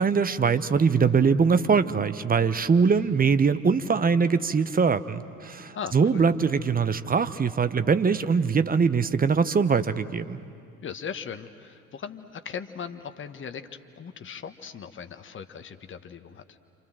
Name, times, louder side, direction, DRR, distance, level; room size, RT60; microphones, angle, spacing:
voice 1, 0.0-10.4, right 5 dB, 20° right, 13 dB, 1.0 m, -22 dB
voice 2, 5.7-6.2 10.8-13.7 14.0-16.6, left 7 dB, 30° left, 8 dB, 1.3 m, -38 dB
27.5 x 27.5 x 7.7 m, 2.4 s
figure-of-eight pair, 60°, 41 cm